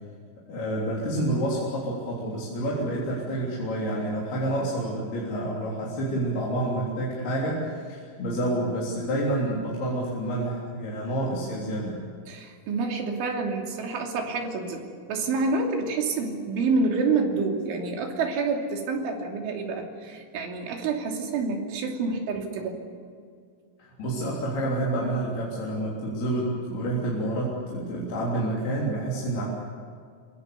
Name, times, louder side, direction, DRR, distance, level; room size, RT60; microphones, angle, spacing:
voice 1, 0.5-12.0 23.8-29.4, right 1 dB, 55° left, -5 dB, 5.2 m, -28 dB
voice 2, 12.3-22.8, right 4 dB, 80° right, 2 dB, 5.3 m, -28 dB
27.5 x 23.0 x 7.0 m, 2.2 s
omnidirectional pair, 5.5 m